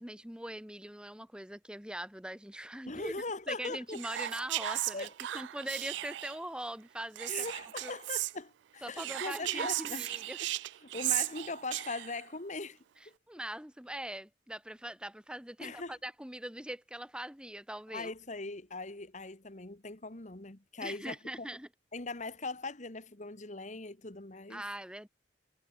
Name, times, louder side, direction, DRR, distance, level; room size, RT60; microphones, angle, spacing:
voice 1, 0.0-3.1 3.5-5.1 5.3-7.5 7.8-7.9 8.8-10.4 13.3-18.1 20.8-21.7 24.5-25.1, right 1 dB, 5° right, 1.4 m, -41 dB
voice 2, 2.9-4.0 4.9-5.1 7.3-10.1 10.4-10.5 10.8-12.8 15.6-16.0 17.9-21.5 21.9-24.6, left 3 dB, 40° left, 1.8 m, -40 dB
Whispering, 3.9-6.4 7.1-8.3 8.9-12.2, right 15 dB, 75° right, 0.3 m, -36 dB
head